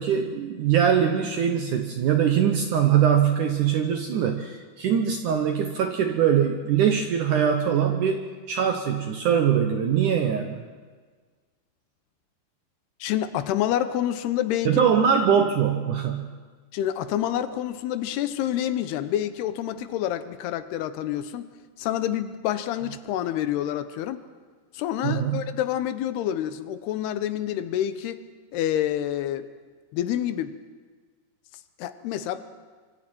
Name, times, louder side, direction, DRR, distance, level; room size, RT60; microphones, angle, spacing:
voice 1, 0.0-10.6 14.7-16.3 25.0-25.4, right 8 dB, 75° right, 5 dB, 1.9 m, -22 dB
voice 2, 13.0-14.9 16.7-21.4 21.8-24.2 24.7-28.2 28.5-29.5 29.9-30.5 31.8-32.4, left 11 dB, 80° left, 11 dB, 2.8 m, -28 dB
25.5 x 24.5 x 4.5 m, 1.5 s
omnidirectional pair, 4.8 m